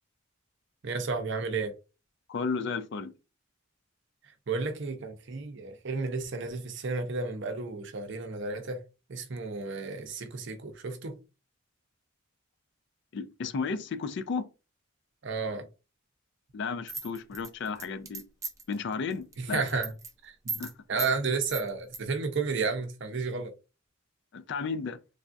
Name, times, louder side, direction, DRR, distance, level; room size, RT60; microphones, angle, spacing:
voice 1, 0.8-1.7 4.5-8.8 9.1-11.2 15.2-15.7 19.4-19.9 20.2-20.6 20.9-23.5, right 4 dB, 60° right, 0.6 m, -32 dB
voice 2, 2.3-3.1 13.1-14.4 16.5-18.2 18.7-19.8 20.6-20.7 24.3-25.0, left 5 dB, 55° left, 0.4 m, -33 dB
sound 1, 16.9-18.7 19.1-19.3 19.6-20.1 20.5-20.7 21.0-21.1 21.5-22.0, right 3 dB, 15° right, 0.5 m, -36 dB
3.3 x 2.3 x 2.5 m
head